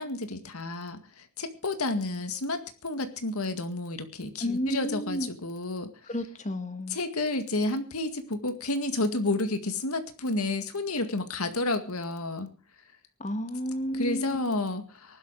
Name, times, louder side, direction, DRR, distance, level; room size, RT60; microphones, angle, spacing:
voice 1, 0.0-5.9 6.9-12.5 13.9-15.2, left 2 dB, 90° left, 8 dB, 2.0 m, -31 dB
voice 2, 4.4-5.3 6.1-7.0 13.2-14.4, equal, 35° left, 8 dB, 1.9 m, -31 dB
19.0 x 12.0 x 4.8 m, 0.36 s
head